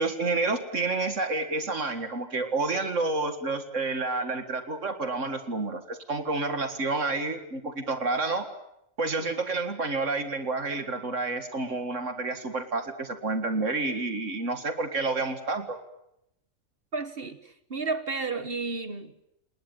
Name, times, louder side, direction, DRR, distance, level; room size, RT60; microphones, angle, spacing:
voice 1, 0.0-8.5 9.0-15.8, right 3 dB, 70° right, 8 dB, 2.3 m, -29 dB
voice 2, 16.9-19.2, right 4 dB, 50° right, 11 dB, 1.5 m, -32 dB
29.0 x 20.0 x 9.1 m, 0.82 s
omnidirectional pair, 1.3 m